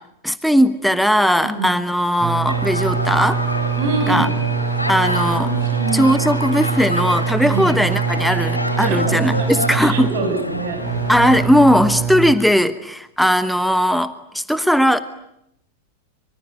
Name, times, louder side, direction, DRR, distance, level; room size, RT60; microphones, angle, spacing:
voice 1, 0.2-3.4 4.0-4.3 4.9-5.5 5.9-10.1 11.1-15.0, equal, ahead, 13 dB, 1.2 m, -18 dB
voice 2, 1.4-1.8 3.8-4.3 5.2-6.0 7.4-7.7 8.8-9.5 9.8-10.8, right 3 dB, 50° right, 6 dB, 6.8 m, -25 dB
sound 1, 2.2-12.3, right 8 dB, 20° right, 4.3 m, -24 dB
sound 2, 2.5-11.5, left 1 dB, 85° left, 2.9 m, -27 dB
25.0 x 24.0 x 9.4 m, 0.77 s
figure-of-eight pair, 90°, 0 cm